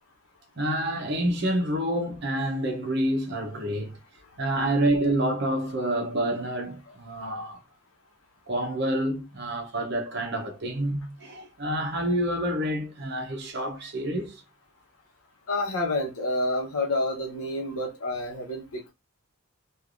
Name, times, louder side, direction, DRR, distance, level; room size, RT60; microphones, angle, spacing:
voice 1, 0.6-4.0 4.4-7.6 8.5-14.4, right 1 dB, 50° right, 0.7 m, -28 dB
voice 2, 15.5-18.9, left 2 dB, 85° left, 0.9 m, -29 dB
3.2 x 2.4 x 2.4 m
head